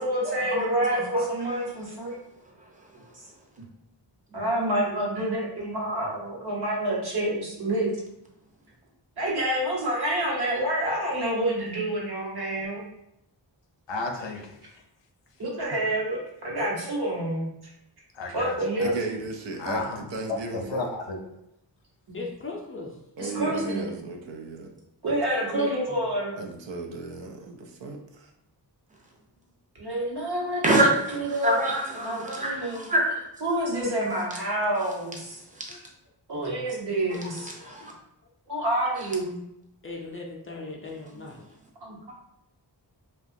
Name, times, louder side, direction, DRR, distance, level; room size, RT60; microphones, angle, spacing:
voice 1, 0.0-2.1 4.3-8.0 9.2-12.8 15.4-17.5 18.3-18.9 22.1-22.2 23.2-24.0 25.0-26.4 29.8-30.8 31.1-31.5 32.0-32.9 33.4-35.4 36.3-37.5 38.5-39.4 41.8-42.1, right 1 dB, 60° right, -4 dB, 0.9 m, -28 dB
voice 2, 13.9-14.8 18.1-18.9 19.6-21.2, left 3 dB, 80° left, 3 dB, 0.5 m, -33 dB
voice 3, 18.8-20.9 23.2-24.7 26.4-28.3, right 3 dB, 80° right, 2 dB, 0.5 m, -35 dB
voice 4, 22.1-23.0 23.2-23.7 25.5-26.0 35.7-35.8 36.3-36.4 39.8-41.4, left 3 dB, 30° left, -1 dB, 0.4 m, -38 dB
voice 5, 30.6-33.2 35.5-35.8 37.1-37.9, right 1 dB, 20° right, -1 dB, 0.5 m, -26 dB
2.8 x 2.2 x 2.5 m, 0.81 s
wide cardioid pair, 95°, 44 cm